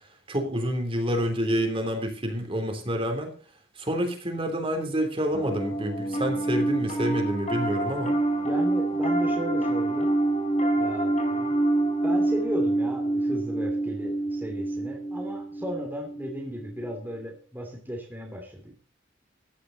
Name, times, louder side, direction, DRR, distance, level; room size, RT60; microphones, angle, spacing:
voice 1, 0.3-3.3 3.8-8.2, equal, 30° right, 4 dB, 3.4 m, -28 dB
Piano, 5.3-16.8, right 2 dB, 35° left, 3.6 m, -26 dB
voice 2, 8.4-10.1 10.8-11.5 12.0-18.7, equal, 10° right, 0 dB, 2.9 m, -35 dB
15.5 x 11.5 x 4.1 m, 0.41 s
head